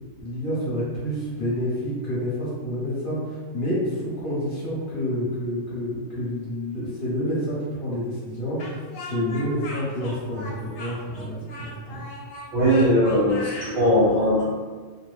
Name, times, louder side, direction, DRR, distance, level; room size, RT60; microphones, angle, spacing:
voice 1, 0.2-12.0, equal, 50° left, -8 dB, 0.8 m, -28 dB
Speech, 8.6-13.7, left 2 dB, 85° left, 1.0 m, -38 dB
voice 2, 12.5-14.4, equal, 55° right, -8 dB, 0.7 m, -19 dB
2.2 x 2.0 x 3.1 m, 1.5 s
omnidirectional pair, 1.4 m